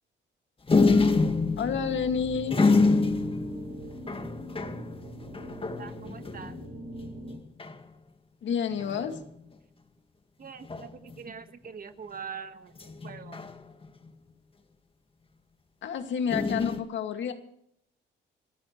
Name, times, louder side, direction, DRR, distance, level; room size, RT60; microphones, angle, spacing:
sound 1, 0.7-6.7 7.0-7.1 7.3-7.8 8.7-9.3 10.7-11.2 12.8-14.1 16.3-16.8, left 3 dB, 25° left, 1.8 m, -27 dB
voice 1, 1.6-2.6 8.4-9.2 15.8-17.3, left 7 dB, 70° left, 6 dB, 2.2 m, -29 dB
sound 2, 1.7-7.4, equal, 80° right, 6.2 m, -42 dB
voice 2, 5.8-6.5 10.4-12.7 13.0-13.4, right 6 dB, 45° right, 9 dB, 1.6 m, -43 dB
27.0 x 13.5 x 3.2 m, 0.73 s
cardioid pair, 90°, 20 cm